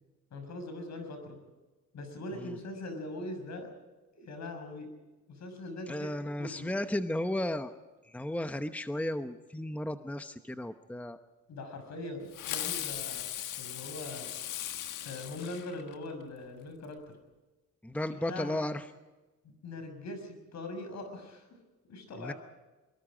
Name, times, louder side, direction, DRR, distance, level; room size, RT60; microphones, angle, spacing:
voice 1, 0.3-1.4 1.9-3.7 4.1-4.9 5.3-6.7 11.5-13.2 13.5-14.3 15.0-17.0 18.2-18.8 19.4-21.5 21.9-22.3, left 2 dB, 65° left, 7 dB, 6.4 m, -41 dB
voice 2, 5.9-7.7 8.1-11.2 17.8-18.8 22.2-22.3, left 1 dB, 5° left, 9 dB, 0.9 m, -34 dB
Fireworks, 12.3-16.2, left 11 dB, 85° left, 1.5 m, -38 dB
24.5 x 22.5 x 5.1 m, 1.2 s
cardioid pair, 90°, 30 cm